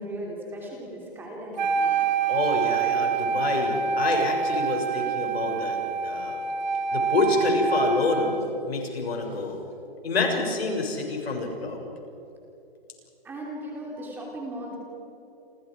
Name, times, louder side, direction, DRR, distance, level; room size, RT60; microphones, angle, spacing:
voice 1, 0.0-2.0 13.2-14.8, right 1 dB, 5° right, -2 dB, 3.2 m, -37 dB
Wind instrument woodwind instrument, 1.6-8.5, right 6 dB, 50° right, 1.7 m, -26 dB
voice 2, 2.3-6.4 6.9-8.3 8.7-9.6 10.0-11.8, left 3 dB, 90° left, 2 dB, 7.1 m, -27 dB
29.5 x 27.0 x 5.0 m, 3.0 s
hypercardioid pair, 170°, 30 cm